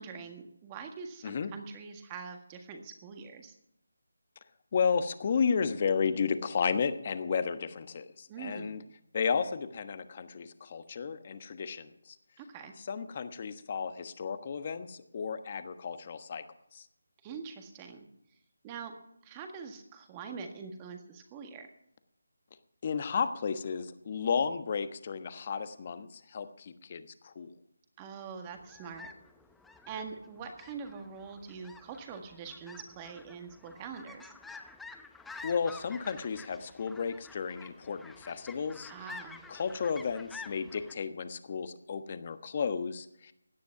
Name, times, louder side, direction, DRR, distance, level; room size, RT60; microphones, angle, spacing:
voice 1, 0.0-3.5 8.3-8.7 12.4-12.7 17.2-18.1 18.6-18.9 19.2-21.7 28.0-29.1 29.9-34.3 38.9-39.4, right 5 dB, 20° right, 5 dB, 1.7 m, -44 dB
voice 2, 4.7-8.8 9.1-12.2 12.8-16.4 16.7-16.9 22.8-27.5 35.4-38.9 39.5-43.3, left 6 dB, 35° left, 10 dB, 1.2 m, -33 dB
sound 1, 28.5-40.9, left 4 dB, 5° left, 0.7 m, -50 dB
16.5 x 10.5 x 5.9 m, 0.77 s
figure-of-eight pair, 165°, 0 cm